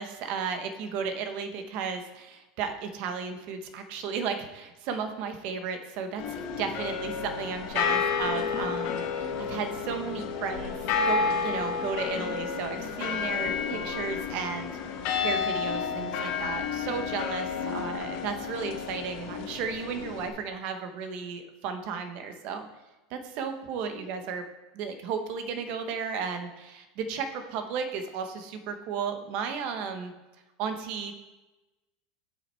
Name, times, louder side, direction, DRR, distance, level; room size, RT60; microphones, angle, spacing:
voice 1, 0.0-10.7 11.1-14.7 15.2-22.7 23.1-24.4 24.7-30.1 30.6-31.1, right 6 dB, 45° right, 7 dB, 1.1 m, -34 dB
sound 1, 6.2-20.3, left 6 dB, 45° left, 1.5 m, -31 dB
7.8 x 7.1 x 4.4 m, 1.1 s
supercardioid pair, 165°, 3 cm